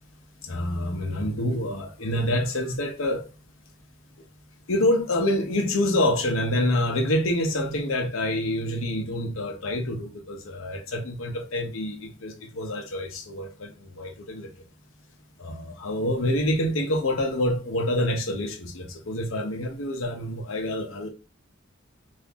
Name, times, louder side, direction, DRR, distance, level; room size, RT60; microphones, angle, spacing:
voice 1, 0.4-3.3 4.7-14.5 15.4-21.1, left 1 dB, 90° left, 0.8 m, -27 dB
2.9 x 2.6 x 3.5 m
head